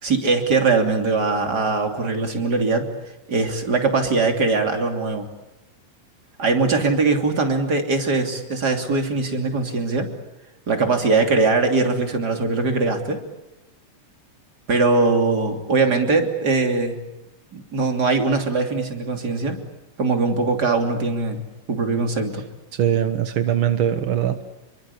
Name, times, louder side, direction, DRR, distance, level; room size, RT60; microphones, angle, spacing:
voice 1, 0.0-2.9 3.3-5.3 6.4-10.1 10.7-13.2 14.7-17.0 17.5-19.6 20.0-22.4, right 3 dB, 30° right, 4 dB, 3.3 m, -21 dB
voice 2, 22.8-24.4, right 10 dB, 65° right, 9 dB, 1.3 m, -21 dB
28.0 x 23.0 x 8.4 m, 0.96 s
omnidirectional pair, 3.8 m